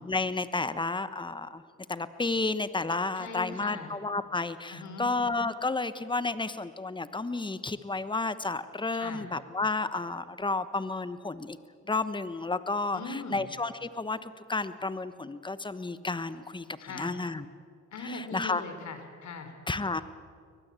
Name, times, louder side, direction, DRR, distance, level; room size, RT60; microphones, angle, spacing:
voice 1, 0.0-1.6 1.9-11.6 11.9-16.7 16.9-17.5 18.0-18.6 19.7-20.0, left 3 dB, 15° left, 13 dB, 1.1 m, -31 dB
voice 2, 3.2-4.0 4.7-5.1 8.9-9.3 12.9-13.5 16.8-17.2 17.9-19.5, left 3 dB, 65° left, 8 dB, 3.5 m, -40 dB
23.5 x 20.0 x 8.3 m, 2.2 s
cardioid pair, 90°, 30 cm